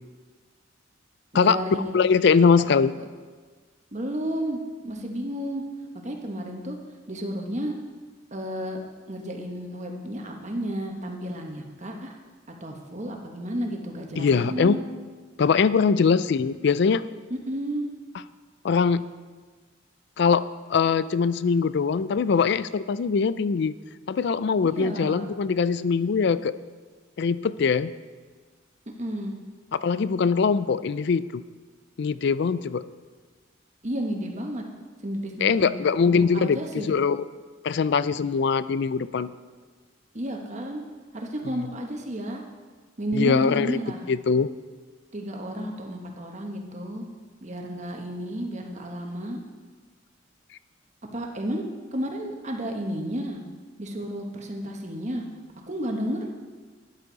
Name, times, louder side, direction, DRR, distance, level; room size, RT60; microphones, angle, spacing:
voice 1, 1.3-2.0 2.6-2.7 2.9-3.0 3.9-4.6 4.8-5.6 6.0-6.8 7.1-7.7 8.3-8.8 9.1-12.1 12.6-14.8 17.3-17.9 24.7-25.3 29.0-29.3 33.8-34.6 35.0-35.7 36.0-36.9 40.1-40.8 41.1-42.4 43.0-44.1 45.1-47.0 47.4-49.4 51.1-51.7 51.9-53.4 53.8-55.2 55.7-56.3, equal, 35° right, 2 dB, 1.3 m, -32 dB
voice 2, 1.9-2.9 14.2-14.8 15.4-17.0 18.6-19.0 20.2-23.7 24.1-26.5 27.2-27.9 29.7-31.4 32.0-32.8 35.4-37.3 37.6-39.3 43.1-43.8 44.1-44.5, left 5 dB, 60° left, 16 dB, 0.4 m, -22 dB
12.0 x 10.5 x 4.0 m, 1.5 s
head